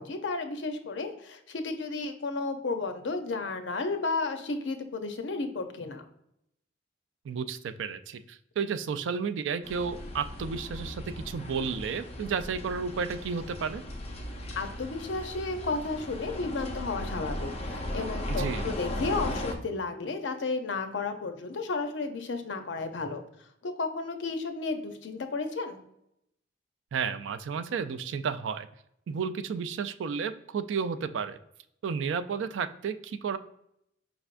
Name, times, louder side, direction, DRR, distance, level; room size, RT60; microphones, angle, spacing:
voice 1, 0.0-6.0 14.6-23.2 23.6-25.8, left 3 dB, 75° left, 7 dB, 0.6 m, -33 dB
voice 2, 7.2-13.8 18.3-18.7 26.9-28.7 29.1-31.4 31.8-33.4, right 6 dB, 80° right, 12 dB, 0.3 m, -32 dB
sound 1, 9.6-19.5, left 1 dB, 35° left, 0.6 m, -37 dB
5.2 x 3.4 x 2.4 m, 0.78 s
head